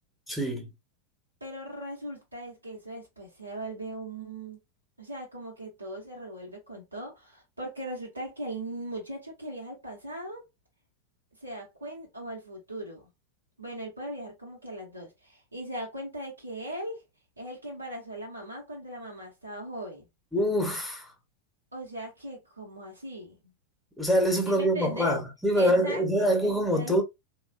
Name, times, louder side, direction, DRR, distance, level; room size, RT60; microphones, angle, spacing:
voice 1, 0.3-0.7 20.3-21.1 24.0-27.0, equal, 5° left, 1.0 m, -25 dB
voice 2, 1.4-4.6 5.0-10.4 11.4-13.1 13.6-17.0 17.4-20.1 21.7-23.5 24.5-25.2 25.5-27.0, right 1 dB, 85° right, 1.0 m, -39 dB
3.2 x 2.4 x 2.3 m
figure-of-eight pair, 90°, 0 cm